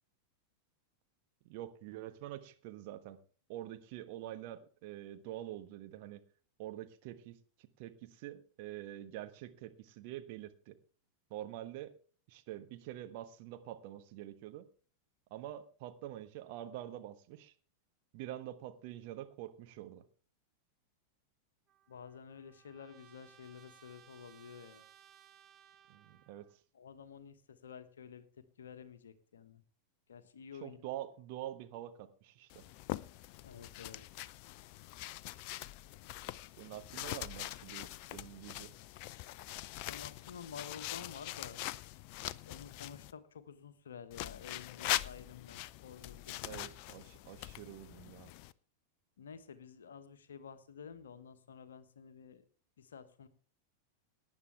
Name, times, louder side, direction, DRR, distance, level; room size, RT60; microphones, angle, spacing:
voice 1, 1.5-3.2 3.5-6.2 6.6-10.8 11.3-12.0 12.3-14.7 15.3-17.5 18.1-20.0 25.9-26.5 30.6-32.6 36.6-38.7 46.4-48.3, right 13 dB, 45° right, 8 dB, 1.3 m, -46 dB
Trumpet, 21.7-26.6, right 10 dB, 30° right, 1.1 m, -62 dB
voice 2, 21.9-24.8 26.7-29.6 30.1-30.8 33.4-34.0 39.9-41.6 42.4-46.8 49.2-52.4 52.8-53.3, left 7 dB, 65° left, 11 dB, 1.3 m, -51 dB
sound 1, 32.5-43.1 44.1-48.5, left 16 dB, 45° left, 0.5 m, -43 dB
18.5 x 9.8 x 3.4 m, 0.40 s
figure-of-eight pair, 90°, 0 cm